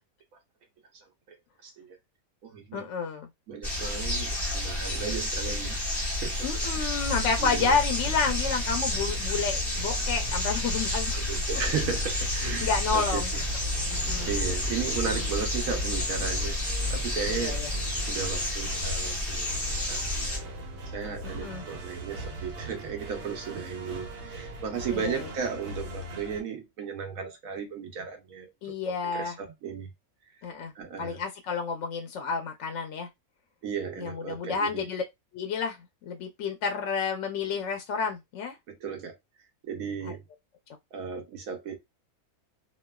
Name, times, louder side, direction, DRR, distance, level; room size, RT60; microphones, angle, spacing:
voice 1, 0.9-1.4 1.6-2.0 2.4-2.9 3.5-6.9 7.4-7.8 11.3-13.2 13.9-17.6 17.9-19.5 19.9-20.0 20.9-29.9 30.7-31.2 33.6-34.9 38.7-39.2 39.6-40.2 40.9-41.8, right 6 dB, 70° right, 1.2 m, -35 dB
voice 2, 2.7-3.3 6.4-11.2 12.6-13.3 13.9-14.3 15.1-15.4 17.3-17.7 21.2-21.6 24.9-25.3 28.6-29.3 30.4-30.7 31.0-33.1 34.0-35.0 35.3-38.6 40.0-40.2, left 5 dB, 65° left, 0.7 m, -30 dB
sound 1, 3.6-20.4, left 1 dB, ahead, 0.9 m, -30 dB
sound 2, 7.0-26.4, right 1 dB, 90° right, 1.3 m, -40 dB
3.1 x 2.3 x 2.2 m
omnidirectional pair, 1.6 m